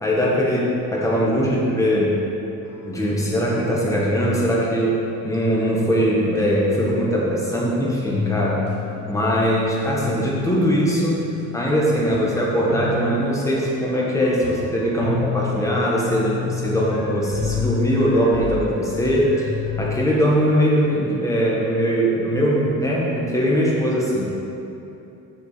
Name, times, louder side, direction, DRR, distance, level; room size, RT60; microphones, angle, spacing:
voice 1, 0.0-2.2 2.8-5.0 5.2-8.7 9.1-19.5 19.8-24.2, equal, 10° left, -5 dB, 1.6 m, -21 dB
sound 1, 2.6-3.7 4.0-4.1 4.5-4.8 5.9-6.0 6.4-6.5 6.7-6.8 7.5-7.6 8.1-20.6, left 5 dB, 80° left, 1.3 m, -31 dB
7.2 x 6.6 x 5.0 m, 2.9 s
cardioid pair, 145°, 36 cm